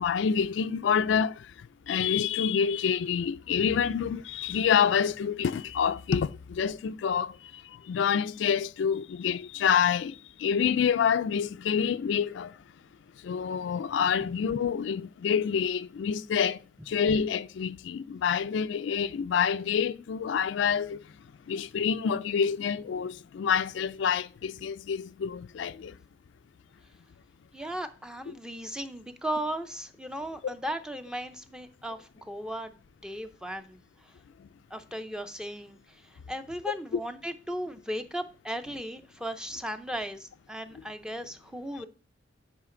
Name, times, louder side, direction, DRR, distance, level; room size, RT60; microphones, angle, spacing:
voice 1, 0.0-12.5 13.2-16.6 16.9-21.0 21.5-26.0, left 7 dB, 70° left, 0.3 m, -27 dB
voice 2, 27.5-32.7 33.0-33.8 34.7-41.9, equal, 5° right, 0.5 m, -36 dB
8.9 x 5.1 x 3.7 m
head